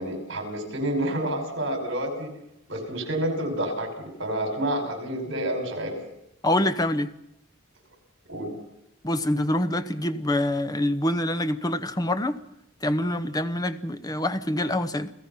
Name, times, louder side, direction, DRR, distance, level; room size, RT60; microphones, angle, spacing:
voice 1, 0.0-2.3 2.7-6.0 8.3-8.5, right 1 dB, 65° right, 4 dB, 5.4 m, -29 dB
voice 2, 6.4-7.1 9.0-12.4 12.8-15.1, left 1 dB, 20° left, 10 dB, 0.8 m, -25 dB
28.5 x 16.5 x 5.6 m, 0.85 s
head